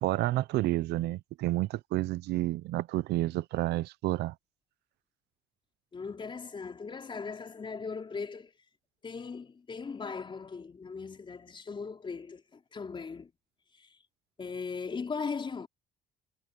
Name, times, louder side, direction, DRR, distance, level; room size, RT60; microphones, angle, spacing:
voice 1, 0.0-4.3, right 16 dB, 75° right, 0.8 m, -30 dB
voice 2, 5.9-8.5 9.0-13.3 13.7-14.0 14.4-15.7, left 5 dB, 30° left, 4.4 m, -38 dB
cardioid pair, 110°, 17 cm